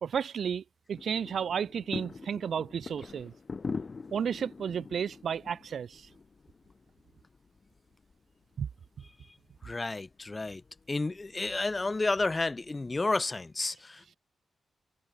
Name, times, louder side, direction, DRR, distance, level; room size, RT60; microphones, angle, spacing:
voice 1, 0.0-3.3 4.1-6.1 8.6-8.7, right 7 dB, 70° right, 0.7 m, -33 dB
sound 1, 0.9-13.0, left 4 dB, 45° left, 1.9 m, -45 dB
voice 2, 9.6-10.6 10.9-14.1, left 3 dB, 30° left, 0.5 m, -31 dB
cardioid pair, 55°, 0 cm